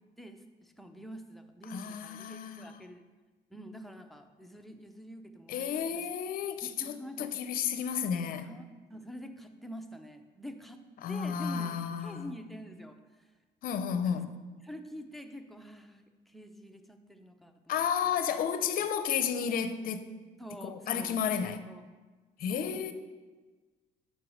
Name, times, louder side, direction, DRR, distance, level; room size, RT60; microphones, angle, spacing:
voice 1, 0.2-3.0 3.5-6.0 6.6-7.3 8.4-8.7 8.9-10.8 11.1-11.7 12.0-13.3 14.0-14.2 14.6-17.8 20.4-21.2 21.7-21.8 22.5-22.8, equal, ahead, 0.6 m, -47 dB
voice 2, 1.7-2.8 5.5-8.5 11.0-12.3 13.6-14.3 17.7-20.1 20.6-21.7 22.4-22.9, left 7 dB, 55° left, 0.5 m, -32 dB
5.4 x 4.6 x 6.3 m
cardioid pair, 110°, 17 cm